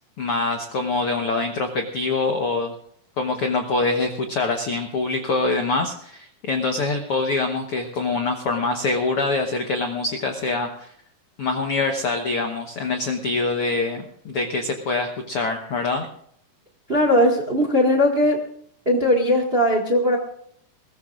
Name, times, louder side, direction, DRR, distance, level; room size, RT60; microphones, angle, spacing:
voice 1, 0.2-2.7 3.2-10.9 11.4-16.1, left 3 dB, 65° left, 4 dB, 1.4 m, -24 dB
voice 2, 16.9-18.4 18.8-20.2, left 1 dB, 30° right, 1 dB, 1.1 m, -19 dB
21.0 x 19.0 x 2.5 m, 0.66 s
omnidirectional pair, 4.1 m